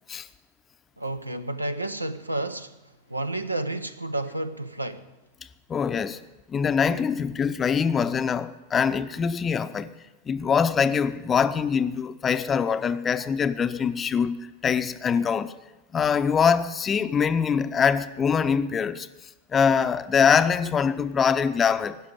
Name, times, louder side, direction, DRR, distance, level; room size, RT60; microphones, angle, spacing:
voice 1, 1.0-2.8 3.1-5.0, right 2 dB, 85° right, 0.6 m, -31 dB
voice 2, 5.7-6.2 6.5-9.9 10.3-14.4 14.6-15.5 15.9-19.1 19.5-22.0, left 6 dB, 20° left, 0.6 m, -23 dB
16.0 x 6.5 x 9.2 m
figure-of-eight pair, 90°, 0 cm